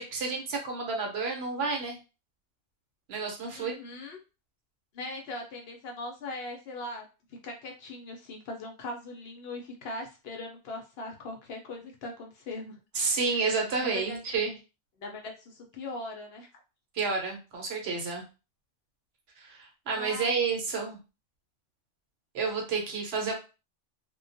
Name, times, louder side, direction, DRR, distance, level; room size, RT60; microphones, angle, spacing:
voice 1, 0.0-2.0 3.1-3.8 12.9-14.5 16.9-18.2 19.4-21.0 22.3-23.3, right 4 dB, 65° right, 2 dB, 0.9 m, -30 dB
voice 2, 3.5-4.2 4.9-7.1 7.4-12.8 13.3-13.4 13.7-14.2 15.0-16.5 19.9-20.3, left 2 dB, 65° left, 2 dB, 0.7 m, -40 dB
2.2 x 2.1 x 2.5 m, 0.31 s
omnidirectional pair, 1.2 m